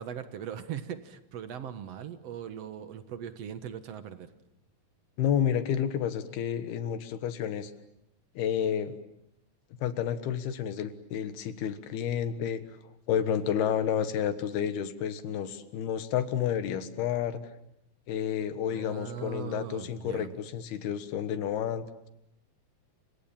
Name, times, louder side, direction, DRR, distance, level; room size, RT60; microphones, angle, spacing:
voice 1, 0.0-4.3 18.7-20.3, right 9 dB, 55° right, 11 dB, 1.8 m, -40 dB
voice 2, 5.2-7.7 8.4-9.0 9.8-12.6 13.1-17.4 18.1-22.1, left 9 dB, 80° left, 11 dB, 3.5 m, -30 dB
29.5 x 26.5 x 7.4 m, 0.80 s
omnidirectional pair, 4.5 m